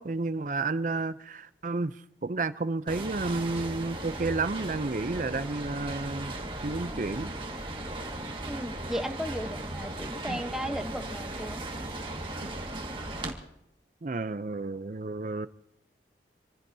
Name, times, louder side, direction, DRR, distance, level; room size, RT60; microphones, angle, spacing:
voice 1, 0.0-1.9 2.2-6.3 6.6-7.3 10.3-10.4 12.4-12.5 14.0-15.5, right 3 dB, 45° right, 0.5 m, -31 dB
sound 1, 2.9-13.3, right 1 dB, 30° right, 1.9 m, -37 dB
voice 2, 8.5-11.6, equal, 5° right, 0.9 m, -35 dB
27.0 x 15.5 x 2.8 m
head